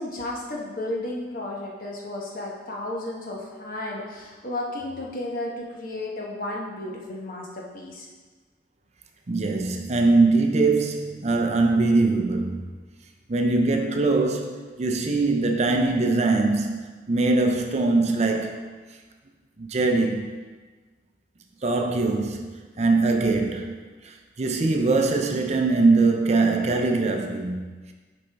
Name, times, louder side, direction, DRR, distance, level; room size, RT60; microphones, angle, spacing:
voice 1, 0.0-8.1, left 1 dB, 50° left, -2 dB, 1.1 m, -33 dB
voice 2, 9.3-12.7 13.3-18.7 19.6-20.4 21.6-27.6, right 3 dB, 40° right, 4 dB, 0.5 m, -22 dB
6.9 x 5.1 x 3.4 m, 1.4 s
head